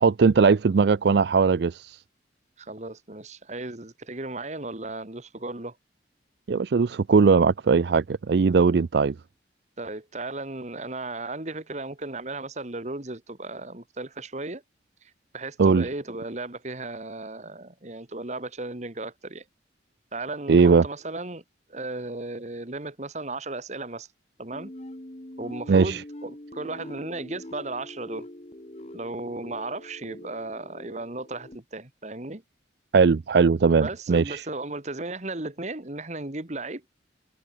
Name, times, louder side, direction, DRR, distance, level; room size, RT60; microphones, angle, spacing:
voice 1, 0.0-2.0 6.5-9.1 15.6-15.9 20.5-20.8 25.7-26.0 32.9-34.4, right 5 dB, 65° right, 0.4 m, -19 dB
voice 2, 2.6-5.8 9.8-14.6 15.3-19.4 20.1-21.4 21.7-24.1 24.4-24.7 25.4-28.3 28.9-32.4 33.8-36.8, right 2 dB, 40° right, 1.8 m, -35 dB
sound 1, 24.5-31.6, left 1 dB, 35° left, 1.9 m, -43 dB
head